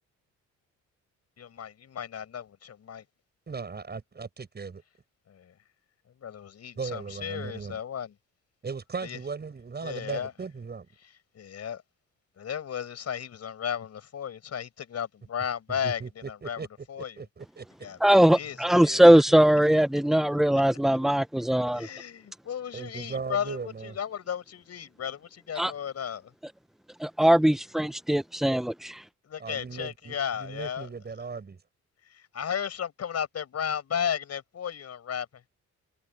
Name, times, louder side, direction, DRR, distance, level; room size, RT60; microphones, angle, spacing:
voice 1, 1.4-3.0 5.3-5.5 6.1-8.1 9.0-9.2 9.8-10.3 11.3-11.8 12.4-17.2 17.8-18.0 18.3-19.1 21.7-26.3 29.2-30.9 32.0-35.4, left 8 dB, 55° left, 6.4 m, -34 dB
voice 2, 3.5-4.8 6.8-7.8 8.6-10.9 15.8-16.7 17.2-17.7 22.7-24.0 29.4-31.6, right 5 dB, 35° right, 7.3 m, -37 dB
voice 3, 18.0-21.9 25.6-25.7 27.0-29.0, right 1 dB, ahead, 0.5 m, -20 dB
cardioid pair, 90°, 30 cm